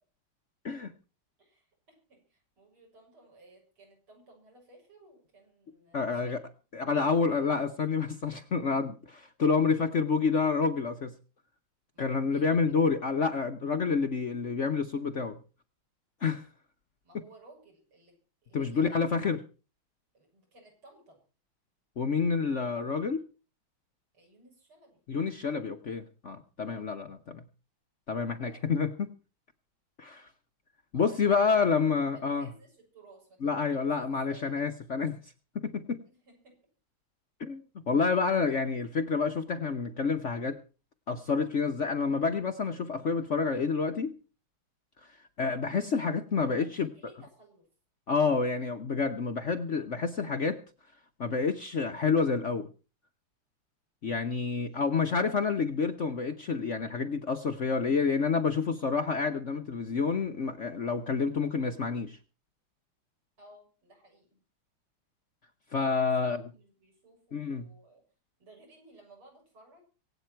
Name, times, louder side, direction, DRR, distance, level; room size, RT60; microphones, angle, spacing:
voice 1, 1.4-6.4 11.9-12.6 17.0-18.2 18.4-18.9 20.1-21.2 24.1-25.0 28.5-28.7 30.9-34.0 34.3-34.5 36.1-36.5 46.5-47.7 54.6-54.8 63.4-64.4 65.8-68.0 68.4-69.8, right 2 dB, 90° right, 0 dB, 7.7 m, -58 dB
voice 2, 5.9-6.4 6.7-11.1 12.0-15.4 16.2-16.5 18.5-19.4 22.0-23.2 25.1-27.4 28.1-29.1 30.0-30.3 30.9-32.5 33.4-35.2 35.5-36.0 37.4-40.6 41.1-44.1 45.0-45.1 45.4-46.9 48.1-50.6 51.2-52.7 54.0-62.2 65.7-66.4 67.3-67.7, left 5 dB, 50° left, 7 dB, 0.9 m, -28 dB
24.0 x 8.8 x 4.5 m, 0.35 s
omnidirectional pair, 2.3 m